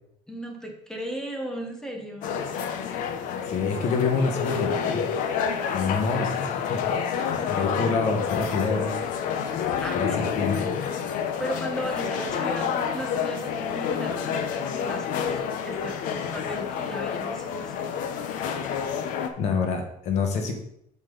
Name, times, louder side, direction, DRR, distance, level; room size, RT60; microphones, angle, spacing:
voice 1, 0.3-2.4 7.5-8.0 9.8-10.8 11.4-17.9, right 1 dB, 5° left, 2 dB, 1.2 m, -36 dB
sound 1, 2.2-19.3, left 7 dB, 80° left, 0.8 m, -29 dB
voice 2, 3.5-5.0 5.7-8.9 9.9-10.7 19.0-20.6, left 5 dB, 60° left, 4 dB, 1.5 m, -27 dB
7.9 x 6.2 x 3.9 m, 0.73 s
cardioid pair, 170°, 13 cm